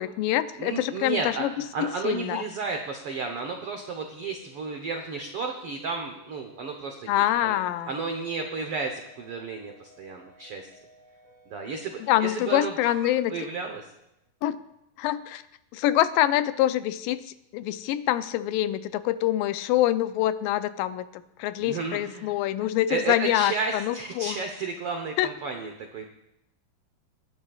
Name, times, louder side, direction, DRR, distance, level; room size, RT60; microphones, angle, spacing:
voice 1, 0.0-1.5 1.8-2.4 7.1-7.9 12.1-13.3 14.4-14.6 15.0-15.4 15.7-24.4 25.2-25.3, left 13 dB, 80° left, 12 dB, 2.2 m, -25 dB
voice 2, 0.6-7.6 7.9-10.7 11.5-13.8 21.6-22.3 22.6-26.0, right 4 dB, 85° right, 4 dB, 1.2 m, -33 dB
sound 1, 3.6-14.0, right 1 dB, 60° right, 5.5 m, -56 dB
23.5 x 11.0 x 2.4 m, 0.83 s
omnidirectional pair, 4.1 m